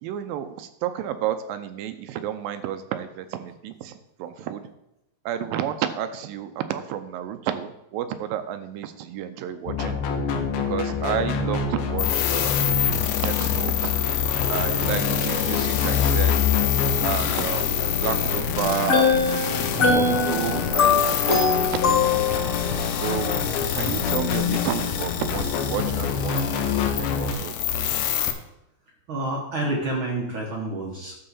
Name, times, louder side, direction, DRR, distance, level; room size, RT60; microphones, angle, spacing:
voice 1, 0.0-4.6 5.3-10.0 10.7-12.7 13.2-13.9 14.5-16.5 17.0-19.1 19.9-22.5 22.9-23.4 23.7-27.5, right 10 dB, 80° right, 9 dB, 2.3 m, -31 dB
sound 1, 9.7-27.3, left 5 dB, 70° left, 2.2 m, -27 dB
sound 2, 12.0-28.3, left 10 dB, 90° left, 2.7 m, -27 dB
voice 2, 16.9-17.4 29.1-31.2, right 2 dB, 60° right, -2 dB, 1.3 m, -29 dB
sound 3, 18.7-22.6, left 4 dB, 45° left, 2.0 m, -22 dB
11.0 x 3.9 x 7.0 m, 0.86 s
omnidirectional pair, 4.3 m